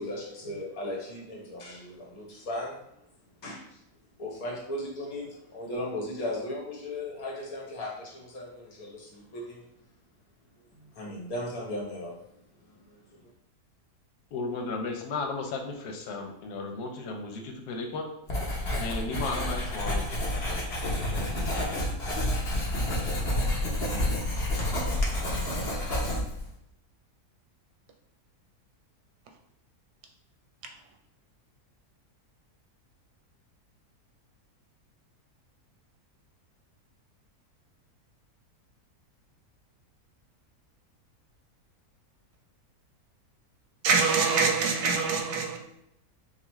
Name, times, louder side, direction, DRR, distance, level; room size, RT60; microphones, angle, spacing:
voice 1, 0.0-2.8 3.4-3.8 4.2-9.7 10.7-12.2 12.6-13.3, left 1 dB, 65° left, 1.5 m, -37 dB
voice 2, 14.3-18.1 18.8-20.5 20.9-21.7, left 3 dB, 85° left, 1.2 m, -35 dB
Writing, 18.3-26.5, left 1 dB, 45° left, 1.0 m, -29 dB
voice 3, 43.8-45.6, right 4 dB, 90° right, 1.3 m, -24 dB
5.5 x 2.1 x 3.0 m
omnidirectional pair, 1.6 m